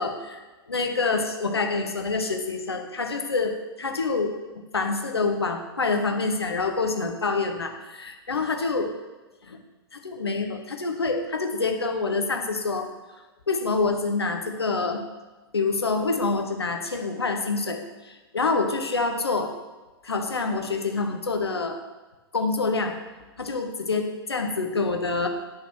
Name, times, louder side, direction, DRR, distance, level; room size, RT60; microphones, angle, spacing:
voice 1, 0.0-8.9 9.5-9.6 9.9-12.9 13.5-15.0 15.5-19.5 20.0-21.8 22.3-22.9 23.4-25.3, left 3 dB, 75° left, 4 dB, 1.0 m, -27 dB
9.5 x 4.1 x 6.2 m, 1.2 s
figure-of-eight pair, 105°, 13 cm